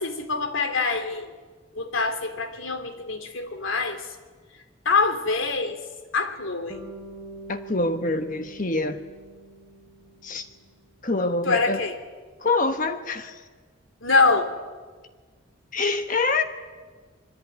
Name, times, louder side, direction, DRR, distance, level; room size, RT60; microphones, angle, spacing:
voice 1, 0.0-1.3 1.7-4.1 4.8-5.8 6.1-6.8 11.4-12.0 14.0-14.6, left 4 dB, 75° left, 8 dB, 3.1 m, -24 dB
Bass guitar, 6.7-11.0, right 2 dB, 5° right, 4.5 m, -44 dB
voice 2, 7.5-9.0 10.2-10.5 11.0-11.8 12.4-13.4 15.7-16.4, left 3 dB, 40° left, 8 dB, 1.2 m, -25 dB
24.5 x 24.0 x 9.4 m, 1.4 s
head